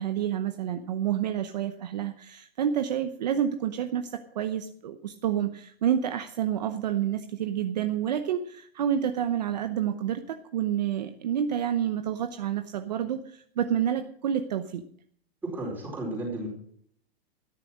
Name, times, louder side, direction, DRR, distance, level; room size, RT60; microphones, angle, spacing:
voice 1, 0.0-14.8, right 9 dB, 45° right, 8 dB, 0.8 m, -29 dB
voice 2, 15.4-16.5, right 2 dB, 5° right, -3 dB, 4.5 m, -33 dB
13.5 x 10.5 x 6.3 m, 0.62 s
hypercardioid pair, 180°, 31 cm